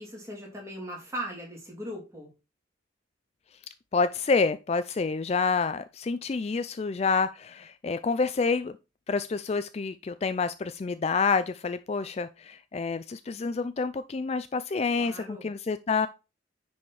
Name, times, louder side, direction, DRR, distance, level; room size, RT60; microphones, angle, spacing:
voice 1, 0.0-2.3 14.9-15.5, equal, 15° right, 3.0 m, -39 dB
voice 2, 3.9-8.7 9.1-16.1, left 4 dB, 30° left, 0.3 m, -28 dB
10.0 x 4.3 x 4.8 m
head